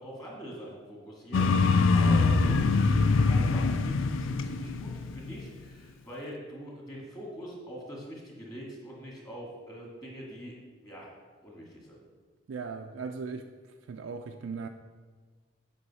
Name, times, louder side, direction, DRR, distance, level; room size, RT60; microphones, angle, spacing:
voice 1, 0.0-10.6 10.8-11.1 11.4-12.0, equal, 20° left, -3 dB, 1.9 m, -43 dB
sound 1, 1.3-5.4, left 4 dB, 80° left, 0.4 m, -24 dB
voice 2, 12.5-13.5 13.8-14.7, right 5 dB, 90° right, 3 dB, 0.4 m, -38 dB
7.9 x 5.3 x 4.1 m, 1.4 s
head